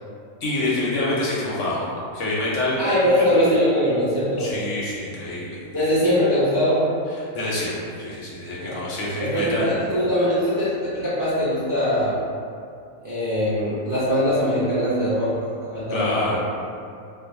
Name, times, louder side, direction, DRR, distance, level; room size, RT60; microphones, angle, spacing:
voice 1, 0.4-1.9 2.1-2.8 4.4-5.9 7.1-9.8 15.9-16.4, left 2 dB, 65° left, -6 dB, 0.9 m, -26 dB
voice 2, 2.8-4.6 5.7-6.9 8.6-8.9 9.2-12.2 13.0-15.4 15.7-16.4, equal, 25° right, -11 dB, 0.4 m, -22 dB
2.5 x 2.2 x 4.0 m, 2.5 s
omnidirectional pair, 1.5 m